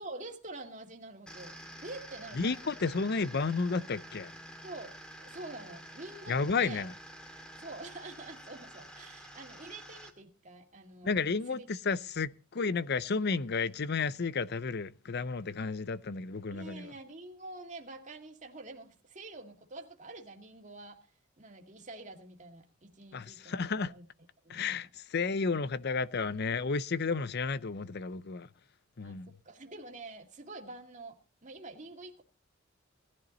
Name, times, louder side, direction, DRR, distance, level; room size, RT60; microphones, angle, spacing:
voice 1, 0.0-1.5 1.8-2.5 4.6-4.9 5.2-6.9 7.6-11.2 11.5-11.7 16.5-21.0 21.4-24.1 24.4-24.9 29.0-32.2, right 2 dB, 35° right, 2.1 m, -47 dB
sound 1, 1.3-10.1, equal, 5° left, 2.2 m, -49 dB
voice 2, 2.4-4.3 6.3-6.9 11.0-16.9 23.1-23.9 24.5-28.5 29.0-29.3, left 4 dB, 55° left, 0.6 m, -32 dB
18.0 x 11.0 x 4.0 m
head